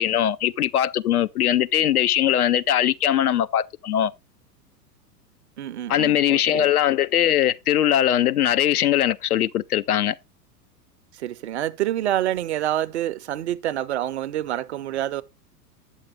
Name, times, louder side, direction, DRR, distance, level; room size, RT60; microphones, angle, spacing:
voice 1, 0.0-4.1 5.9-10.1, left 11 dB, 65° left, 0.6 m, -21 dB
voice 2, 5.6-6.7 11.1-15.2, right 12 dB, 45° right, 0.5 m, -27 dB
8.8 x 7.0 x 3.2 m
figure-of-eight pair, 95°, 49 cm